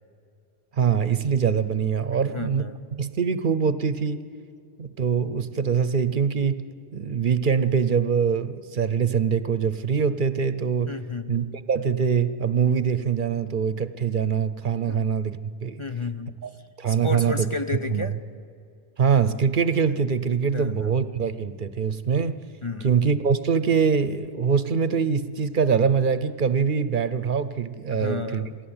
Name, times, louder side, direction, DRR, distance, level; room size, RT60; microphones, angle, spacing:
voice 1, 0.8-2.6 2.9-4.2 4.8-6.7 6.9-11.0 11.3-15.8 16.4-16.5 16.8-17.5 17.9-18.1 19.0-22.4 22.8-28.5, right 6 dB, 55° right, 13 dB, 0.9 m, -23 dB
voice 2, 2.3-2.8 10.9-11.3 14.9-15.1 15.8-16.3 16.9-18.2 20.5-20.9 22.6-22.9 27.9-28.6, left 3 dB, 35° left, 8 dB, 0.7 m, -32 dB
27.0 x 17.5 x 8.8 m, 2.5 s
omnidirectional pair, 1.0 m